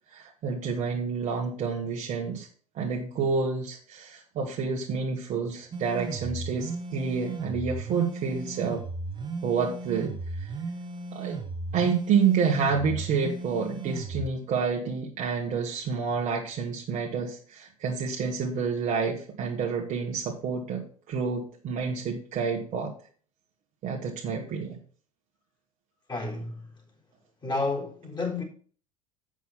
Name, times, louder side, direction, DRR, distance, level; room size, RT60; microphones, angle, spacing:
voice 1, 0.1-2.5 2.7-8.8 9.4-10.5 11.1-11.4 11.7-22.9 23.8-24.8, right 5 dB, 45° right, 1.7 m, -29 dB
sound 1, 5.7-14.3, right 3 dB, 25° right, 1.5 m, -35 dB
voice 2, 26.1-26.7 27.4-28.4, left 3 dB, 25° left, 4.0 m, -30 dB
8.0 x 6.3 x 5.7 m
hypercardioid pair, 70°, 17 cm